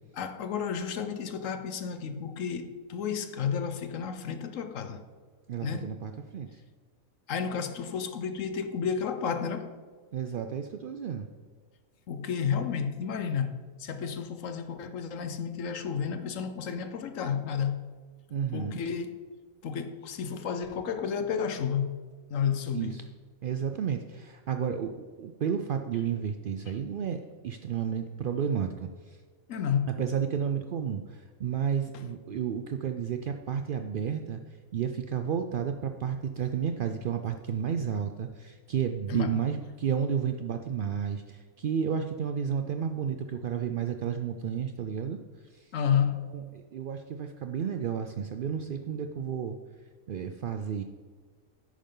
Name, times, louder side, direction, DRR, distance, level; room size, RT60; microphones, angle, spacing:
voice 1, 0.1-5.0 5.6-5.9 7.3-9.8 12.1-17.8 18.5-19.2 19.6-22.0 22.3-23.0 26.6-26.7 29.5-29.9 31.9-32.0 39.1-39.4 45.7-46.3, left 7 dB, 65° left, 1.1 m, -31 dB
voice 2, 5.5-6.6 10.1-11.3 18.3-18.8 22.7-23.0 23.4-29.2 30.0-34.4 34.7-45.2 45.5-45.7 46.3-49.6 50.1-50.8, right 7 dB, 80° right, 0.4 m, -32 dB
10.5 x 8.5 x 3.8 m
omnidirectional pair, 1.5 m